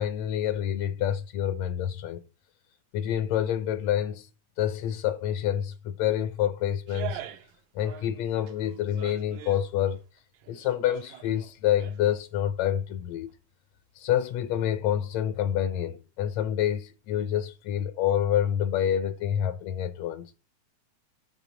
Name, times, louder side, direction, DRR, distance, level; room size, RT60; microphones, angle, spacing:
voice 1, 0.0-2.2 2.9-4.3 4.6-7.2 7.7-10.0 10.5-13.3 13.9-20.3, left 10 dB, 80° left, 1.6 m, -27 dB
sound 1, 6.9-7.6 7.8-9.6 10.2-12.2 12.6-12.7, right 13 dB, 80° right, 1.9 m, -43 dB
8.4 x 3.3 x 5.8 m
omnidirectional pair, 3.4 m